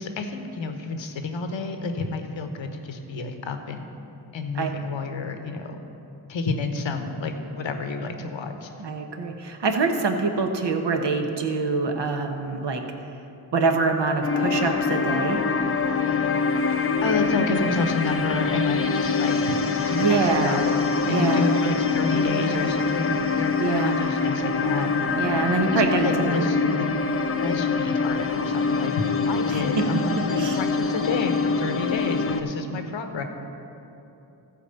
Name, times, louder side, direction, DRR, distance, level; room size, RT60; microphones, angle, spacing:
voice 1, 0.0-3.9 4.3-5.8 6.3-8.7 17.0-20.7 21.1-24.9 25.7-26.9 27.4-33.2, left 3 dB, 65° left, 6 dB, 1.1 m, -30 dB
voice 2, 8.8-12.8 13.5-15.4 19.9-20.7 21.1-21.4 23.6-24.0 25.2-26.9 29.5-30.6, right 4 dB, 55° right, 4 dB, 1.2 m, -25 dB
sound 1, 14.2-32.4, left 4 dB, 30° left, 0.7 m, -24 dB
14.0 x 4.8 x 6.9 m, 2.9 s
supercardioid pair, 45°, 49 cm